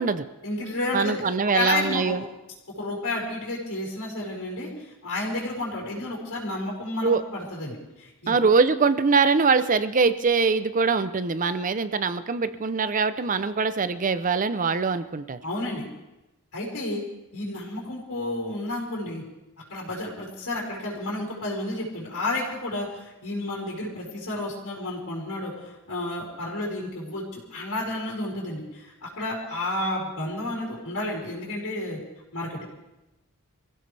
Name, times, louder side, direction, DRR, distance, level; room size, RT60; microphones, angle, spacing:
voice 1, 0.4-1.2 1.5-2.2 2.7-8.4 15.4-15.8 16.5-17.0 17.3-19.2 19.7-32.0 32.3-32.7, left 2 dB, 85° left, -5 dB, 4.9 m, -31 dB
voice 2, 0.9-2.2 7.0-7.2 8.3-15.4, right 4 dB, 35° right, 12 dB, 0.6 m, -23 dB
25.5 x 15.5 x 3.4 m, 0.99 s
head